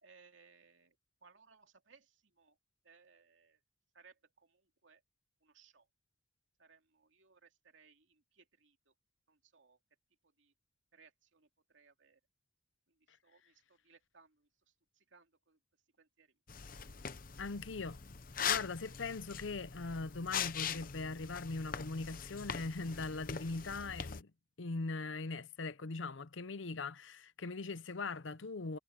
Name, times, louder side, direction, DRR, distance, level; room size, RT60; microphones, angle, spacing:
voice 1, 0.0-2.6 2.8-3.6 3.9-5.0 5.4-5.9 6.6-8.9 9.3-9.8 10.4-10.5 10.9-12.2 12.9-14.5 14.9-15.6 16.0-16.3 16.7-17.4, right 5 dB, 75° right, 2.7 m, -65 dB
sound 1, 16.5-24.2, left 7 dB, 45° left, 0.8 m, -41 dB
voice 2, 17.4-18.0 18.5-24.3 24.6-28.8, left 3 dB, 75° left, 0.8 m, -40 dB
head